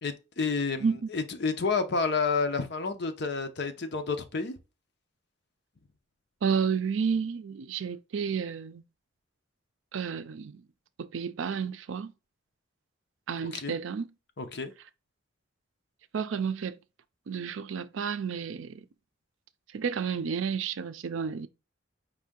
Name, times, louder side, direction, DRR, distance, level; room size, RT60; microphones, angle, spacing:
voice 1, 0.0-4.6 13.5-13.7 14.4-14.7, left 4 dB, 60° left, 0.7 m, -30 dB
voice 2, 6.4-8.8 9.9-10.6 11.0-12.1 13.3-14.1 16.1-16.8 17.3-18.8 19.7-21.5, right 6 dB, 80° right, 0.4 m, -31 dB
4.8 x 2.7 x 3.6 m
head